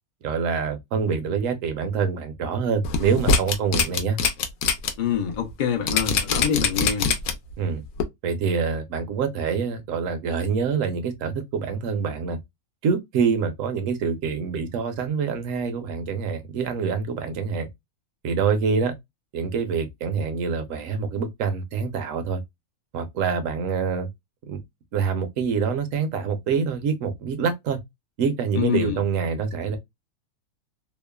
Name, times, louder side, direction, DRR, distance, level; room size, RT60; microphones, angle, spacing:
voice 1, 0.2-4.2 7.6-7.8 8.2-12.4 12.8-17.7 18.2-18.9 19.3-22.4 22.9-24.1 24.5-24.6 24.9-27.8 28.2-29.8, right 6 dB, 70° right, 1.0 m, -26 dB
sound 1, 2.8-4.9 5.3-5.4 5.9-7.5 8.0-8.1, left 5 dB, 80° left, 1.1 m, -22 dB
voice 2, 5.0-7.1 28.5-29.0, left 8 dB, 60° left, 0.5 m, -25 dB
2.9 x 2.0 x 2.2 m
omnidirectional pair, 1.5 m